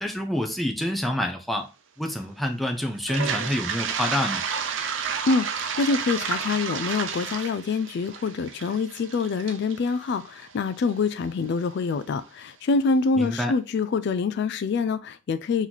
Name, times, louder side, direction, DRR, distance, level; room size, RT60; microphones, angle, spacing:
voice 1, 0.0-1.7 2.0-4.4 13.2-13.5, left 1 dB, ahead, 0.6 m, -27 dB
Toilet flush, 3.0-10.9, right 6 dB, 75° right, 0.6 m, -31 dB
voice 2, 5.3-15.7, left 4 dB, 60° left, 0.3 m, -25 dB
4.1 x 3.0 x 3.9 m
head